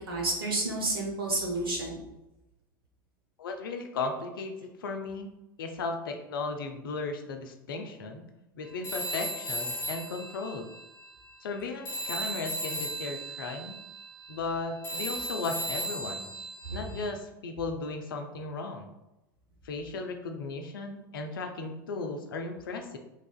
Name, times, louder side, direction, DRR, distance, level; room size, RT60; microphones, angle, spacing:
voice 1, 0.1-2.0 16.6-16.8, right 2 dB, 80° right, -2 dB, 0.9 m, -30 dB
voice 2, 3.4-5.3 5.6-8.2 8.5-10.7 11.4-13.8 14.3-16.3 16.7-18.9 19.6-23.0, left 3 dB, 70° left, 5 dB, 0.4 m, -36 dB
Telephone, 8.8-11.6 11.9-17.1, right 1 dB, 30° left, 1.0 m, -36 dB
3.3 x 2.4 x 2.3 m, 0.96 s
figure-of-eight pair, 85°, 12 cm